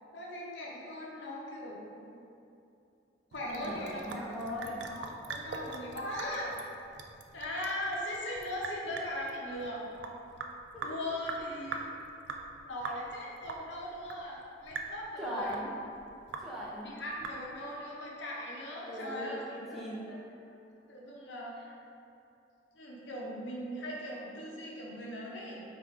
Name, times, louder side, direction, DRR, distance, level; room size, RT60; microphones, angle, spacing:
voice 1, 0.1-2.2 3.3-4.0 4.9-6.5 7.3-9.8 10.8-11.9 12.6-15.6 16.8-19.4 19.7-20.2 20.5-20.6 20.9-21.6 22.8-25.6, left 1 dB, 70° left, -3 dB, 0.7 m, -39 dB
Sink (filling or washing) / Drip, 3.3-17.8, right 4 dB, 65° right, 0.3 m, -43 dB
voice 2, 3.4-4.8 10.7-11.0 15.2-15.7 16.4-16.9 18.7-19.4 19.7-20.0, equal, ahead, -7 dB, 0.5 m, -39 dB
4.4 x 2.5 x 3.5 m, 2.6 s
head